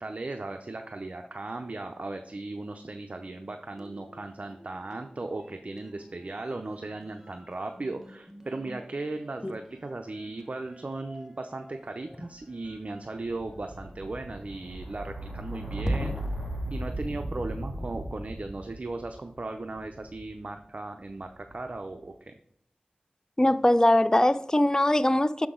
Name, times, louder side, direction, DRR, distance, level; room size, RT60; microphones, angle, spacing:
voice 1, 0.0-16.1 16.7-22.3, right 2 dB, 55° right, 0.6 m, -37 dB
sound 1, 3.7-5.1 5.4-20.4 21.2-21.7, right 1 dB, 10° right, 1.2 m, -38 dB
voice 2, 23.4-25.5, left 1 dB, 25° left, 0.4 m, -21 dB
6.6 x 5.9 x 3.7 m
wide cardioid pair, 45°, 3 cm